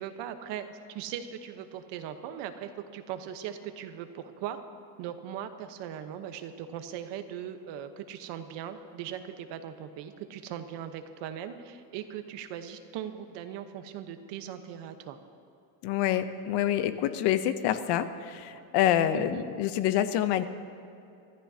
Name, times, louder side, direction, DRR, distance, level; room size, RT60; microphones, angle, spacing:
voice 1, 0.0-4.6 5.0-15.2 19.1-19.4, right 9 dB, 60° right, 8 dB, 1.1 m, -39 dB
voice 2, 15.8-20.5, left 11 dB, 55° left, 11 dB, 0.8 m, -27 dB
24.5 x 14.5 x 2.8 m, 2.7 s
cardioid pair, 155°, 49 cm